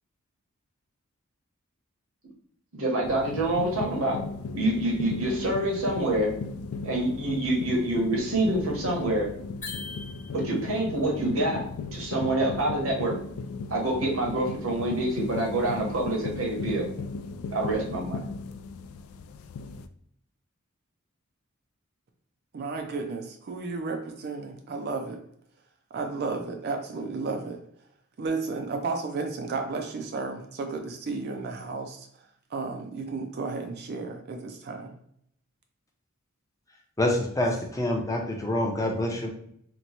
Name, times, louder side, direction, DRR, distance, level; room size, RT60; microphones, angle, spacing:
voice 1, 2.7-4.2 4.5-6.3 6.8-9.3 10.3-11.6 11.9-13.2 13.7-16.9 17.5-18.2, right 1 dB, 75° right, -1 dB, 1.1 m, -26 dB
sound 1, 3.0-19.9, left 4 dB, 80° left, 0.3 m, -37 dB
sound 2, 9.6-10.8, left 4 dB, 40° left, 1.0 m, -40 dB
voice 2, 22.5-25.2 25.9-27.6 28.2-32.1 32.5-35.0, right 4 dB, 50° right, 4 dB, 0.4 m, -33 dB
voice 3, 37.0-39.3, left 1 dB, 15° left, 1 dB, 0.6 m, -26 dB
2.9 x 2.2 x 4.0 m, 0.68 s
head